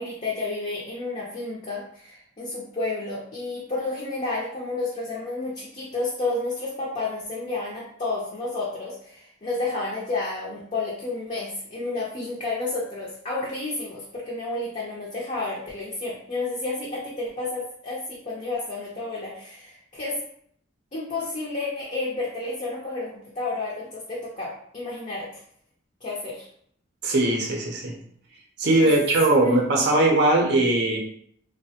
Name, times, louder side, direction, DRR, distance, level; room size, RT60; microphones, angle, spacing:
voice 1, 0.0-20.1 20.9-25.4 26.0-26.5 28.8-28.9 29.4-29.5, left 2 dB, 35° left, -5 dB, 0.5 m, -31 dB
voice 2, 27.0-27.9 28.6-31.0, right 2 dB, 55° right, 0 dB, 0.5 m, -20 dB
3.2 x 2.1 x 2.7 m, 0.66 s
head